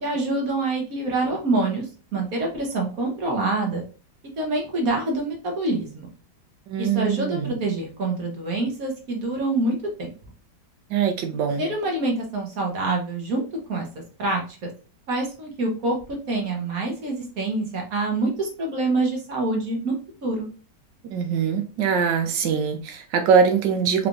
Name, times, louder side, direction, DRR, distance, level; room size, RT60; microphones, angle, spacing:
voice 1, 0.0-1.8 2.1-3.8 4.4-6.1 6.8-10.1 11.6-13.4 13.7-13.9 14.2-14.7 15.1-15.9 16.3-19.9 20.2-20.5, right 2 dB, 60° right, 1 dB, 1.4 m, -26 dB
voice 2, 6.7-7.5 10.9-11.7 21.1-24.1, right 6 dB, 90° right, 6 dB, 1.4 m, -22 dB
4.7 x 3.3 x 2.5 m, 0.35 s
omnidirectional pair, 1.9 m